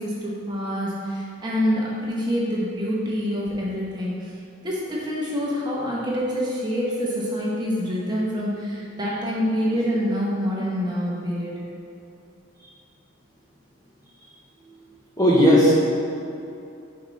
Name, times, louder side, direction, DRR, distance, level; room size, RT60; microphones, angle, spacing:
voice 1, 0.0-4.3 4.6-11.6, equal, 20° right, -6 dB, 1.0 m, -26 dB
voice 2, 15.2-15.7, equal, 15° left, -6 dB, 0.8 m, -15 dB
5.6 x 5.2 x 4.0 m, 2.6 s
head